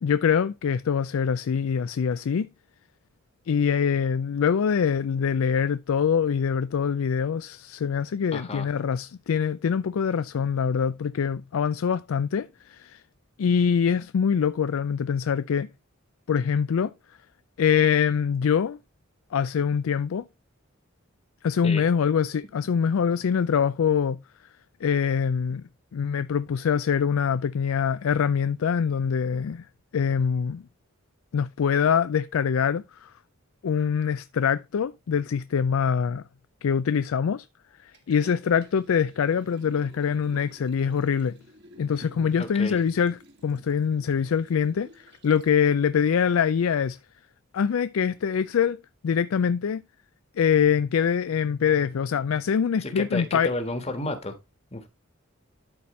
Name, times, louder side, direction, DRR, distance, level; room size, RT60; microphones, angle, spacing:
voice 1, 0.0-2.5 3.5-13.0 13.4-15.7 16.3-16.9 17.6-18.8 19.3-20.3 21.4-24.2 24.8-25.6 25.9-29.7 29.9-30.6 31.3-33.1 33.6-36.2 36.6-37.5 37.8-41.4 41.8-43.2 43.4-47.0 47.5-49.8 50.4-53.5, left 7 dB, 75° left, 0.4 m, -24 dB
voice 2, 8.3-8.7 21.6-21.9 42.4-42.8 52.8-54.3 54.7-54.9, left 2 dB, 30° left, 1.4 m, -32 dB
Liquid, 37.9-45.6 46.0-46.1, right 1 dB, 55° right, 1.6 m, -51 dB
12.5 x 4.3 x 3.1 m
head